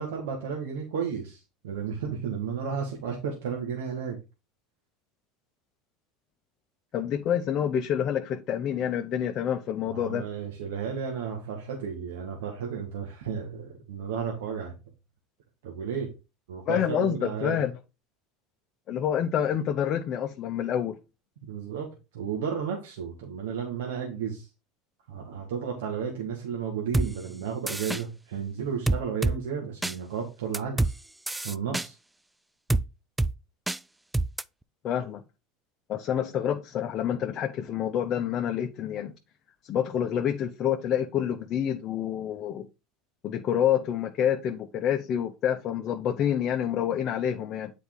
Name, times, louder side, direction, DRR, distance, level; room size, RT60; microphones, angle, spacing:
voice 1, 0.0-4.2 9.9-14.7 15.6-16.2 16.5-17.6 21.4-24.5 25.1-30.9 31.4-31.9, right 6 dB, 85° right, 1.5 m, -33 dB
voice 2, 6.9-10.3 16.7-17.8 18.9-21.0 34.8-35.2 35.9-39.1 39.6-42.7 43.2-47.7, left 9 dB, 45° left, 0.8 m, -28 dB
sound 1, 26.9-27.1 27.7-28.0 28.9-29.4 29.8-30.0 30.5-30.9 31.3-31.9 32.7-32.8 33.2-33.3 33.7-33.8 34.1-34.4, right 2 dB, 10° right, 0.3 m, -25 dB
8.0 x 4.2 x 3.6 m
supercardioid pair, 100°, 0 cm